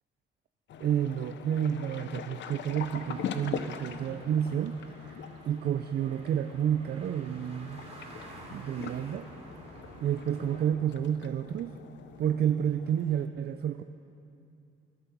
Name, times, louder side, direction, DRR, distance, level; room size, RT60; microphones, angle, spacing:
sound 1, 0.7-13.3, left 8 dB, 65° left, 0.7 m, -43 dB
voice 1, 0.8-7.9 8.5-9.3 10.0-11.8 12.2-13.8, right 9 dB, 55° right, 9 dB, 0.4 m, -30 dB
sound 2, 2.7-10.6, right 2 dB, 35° right, 3.5 m, -50 dB
12.0 x 11.5 x 5.9 m, 2.6 s
cardioid pair, 90°, 20 cm